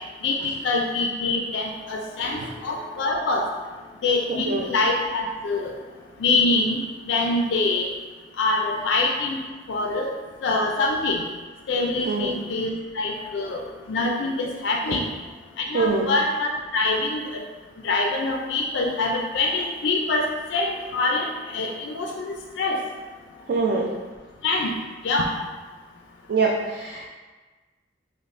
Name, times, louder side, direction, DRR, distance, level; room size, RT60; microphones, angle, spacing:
voice 1, 0.2-3.5 4.0-5.7 6.2-6.8 7.1-7.9 8.4-9.4 9.7-10.1 10.4-11.2 11.7-15.0 15.7-17.4 17.8-22.8 24.4-24.7 25.0-25.3, left 3 dB, 75° left, 0 dB, 0.4 m, -25 dB
voice 2, 4.3-4.6 12.0-12.3 15.7-16.1 23.5-23.9 26.3-27.1, right 4 dB, 60° right, -2 dB, 0.3 m, -24 dB
5.1 x 2.1 x 2.5 m, 1.3 s
head